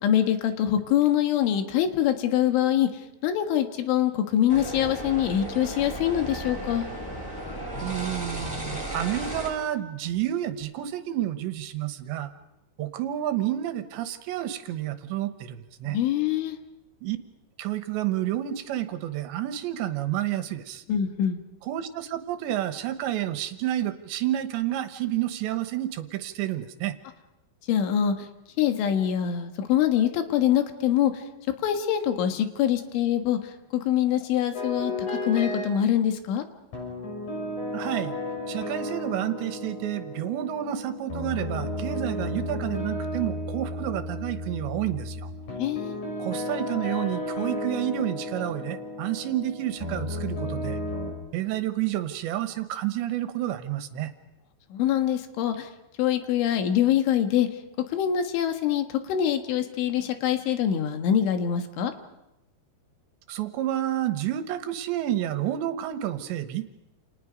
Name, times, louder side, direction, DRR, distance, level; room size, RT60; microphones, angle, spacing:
voice 1, 0.0-2.9 3.2-6.9 15.9-16.6 20.9-21.4 27.7-28.2 28.6-31.1 31.6-33.4 33.7-36.4 45.5-46.0 54.7-55.7 56.0-57.5 57.9-61.9, left 10 dB, 85° left, 7 dB, 4.1 m, -24 dB
sound 1, 4.5-9.5, right 1 dB, 5° left, 6.3 m, -34 dB
voice 2, 7.8-12.3 12.8-16.0 17.0-17.2 17.6-20.8 21.6-27.0 37.7-38.2 38.5-45.2 46.2-50.8 51.3-54.1 63.3-66.7, right 12 dB, 75° right, 9 dB, 3.3 m, -30 dB
sound 2, 34.5-35.7 36.7-51.1, left 1 dB, 40° left, 7.8 m, -33 dB
29.5 x 29.0 x 5.2 m, 0.94 s
omnidirectional pair, 5.4 m